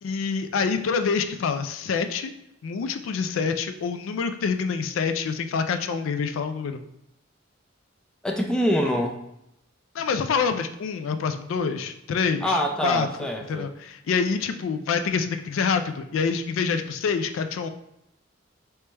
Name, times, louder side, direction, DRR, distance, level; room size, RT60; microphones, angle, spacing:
voice 1, 0.0-2.3 2.6-6.8 9.9-13.1 13.5-17.7, left 5 dB, 90° left, 9 dB, 0.4 m, -26 dB
voice 2, 8.2-9.2 12.4-13.7, equal, 5° left, 2 dB, 0.4 m, -25 dB
3.3 x 3.0 x 3.3 m, 0.82 s
head